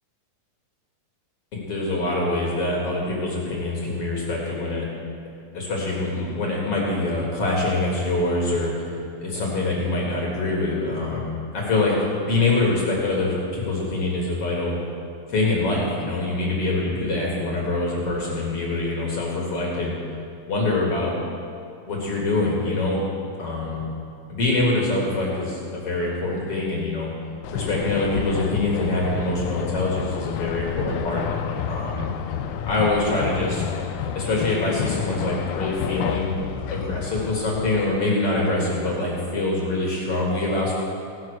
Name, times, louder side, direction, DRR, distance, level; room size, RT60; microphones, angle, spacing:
voice 1, 1.5-4.8 5.5-8.9 9.2-11.9 12.2-14.7 15.3-19.9 20.5-21.1 21.9-23.0 23.4-23.8 24.3-27.1 27.5-32.0 32.7-33.6 34.1-36.3 36.7-40.7, left 2 dB, 50° left, -3 dB, 2.3 m, -24 dB
sound 1, 27.4-37.9, left 7 dB, 85° left, 2.3 m, -30 dB
17.0 x 5.9 x 6.3 m, 2.5 s
omnidirectional pair, 4.1 m